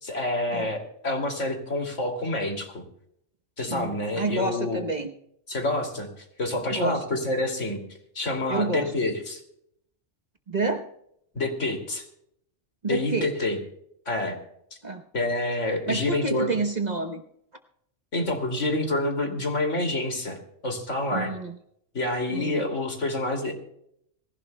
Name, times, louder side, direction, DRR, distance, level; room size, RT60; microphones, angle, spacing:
voice 1, 0.0-2.8 3.6-4.9 5.5-6.1 6.4-7.8 8.1-9.4 11.3-12.0 12.9-13.6 14.1-14.4 15.1-16.5 18.1-20.4 20.6-21.3 21.9-23.5, left 2 dB, 70° left, 3 dB, 3.0 m, -27 dB
voice 2, 3.7-5.1 6.7-7.0 8.5-8.9 10.5-10.9 12.8-13.3 14.8-15.0 15.9-17.2 21.1-21.6 22.3-22.6, right 3 dB, 35° right, 5 dB, 1.0 m, -28 dB
23.5 x 16.0 x 2.2 m, 0.71 s
omnidirectional pair, 1.3 m